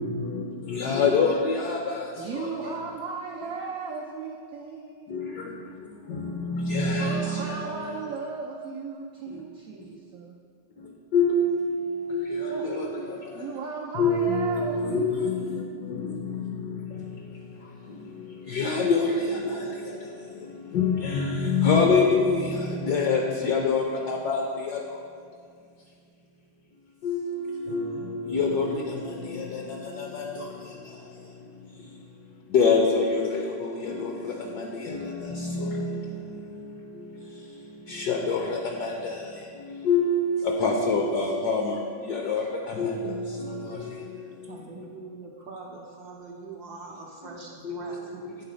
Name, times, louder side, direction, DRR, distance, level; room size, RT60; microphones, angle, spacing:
voice 1, 0.0-2.0 2.3-2.5 5.1-5.5 6.1-7.7 11.1-13.2 14.0-16.3 18.5-19.6 20.7-24.8 27.0-30.5 32.5-36.0 37.9-39.2 39.6-41.8 42.1-42.4 42.8-43.8 47.6-47.9, left 4 dB, 65° left, 1 dB, 1.0 m, -26 dB
voice 2, 1.8-5.6 7.0-10.3 12.5-12.7 13.3-15.6, right 4 dB, 90° right, -1 dB, 0.7 m, -36 dB
voice 3, 44.5-48.2, right 3 dB, 70° right, -1 dB, 1.0 m, -42 dB
8.5 x 4.0 x 5.0 m, 2.2 s
omnidirectional pair, 2.2 m